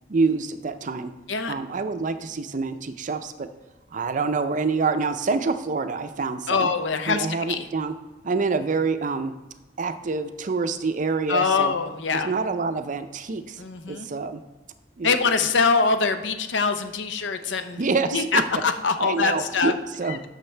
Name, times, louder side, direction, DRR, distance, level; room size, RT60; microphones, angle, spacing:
voice 1, 0.1-1.1 1.5-3.5 3.9-6.7 7.1-8.0 8.2-9.3 9.8-11.7 12.1-14.4 15.0-15.1 17.8-18.4 19.0-20.2, right 4 dB, 45° right, 10 dB, 0.5 m, -26 dB
voice 2, 6.5-7.7 11.3-12.3 13.6-14.1 15.0-17.8 18.1-19.7 20.1-20.2, left 4 dB, 80° left, 9 dB, 0.7 m, -24 dB
12.0 x 6.5 x 3.3 m, 1.2 s
head